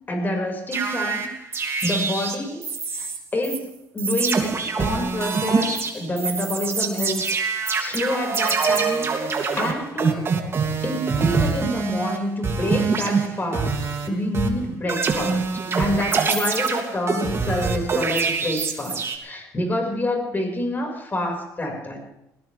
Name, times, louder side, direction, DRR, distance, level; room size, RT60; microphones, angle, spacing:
voice 1, 0.1-2.6 2.9-7.2 7.8-10.3 10.8-13.7 14.1-22.0, left 1 dB, 25° left, 2 dB, 5.9 m, -27 dB
sound 1, 0.7-3.2 3.4-3.6 4.0-12.2 12.4-14.1 14.3-19.2, right 5 dB, 35° right, 2.8 m, -25 dB
20.0 x 18.5 x 3.6 m, 0.89 s
supercardioid pair, 90°, 7 cm